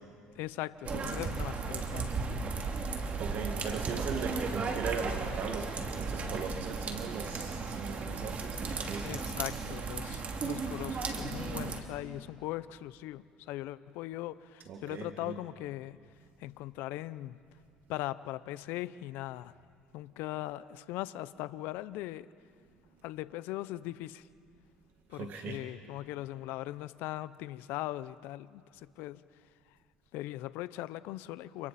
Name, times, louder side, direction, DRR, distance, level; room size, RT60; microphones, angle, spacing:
voice 1, 0.3-2.1 9.0-16.0 16.4-17.4 17.9-19.5 19.9-22.3 23.0-24.3 25.1-29.8 30.1-31.7, left 16 dB, 70° left, 16 dB, 0.7 m, -40 dB
sound 1, 0.8-11.8, right 4 dB, 40° right, 2.7 m, -35 dB
voice 2, 3.2-9.2 14.7-15.3 25.1-25.6, right 5 dB, 60° right, 3 dB, 2.0 m, -39 dB
29.5 x 27.5 x 4.3 m, 2.2 s
supercardioid pair, 85°, 4 cm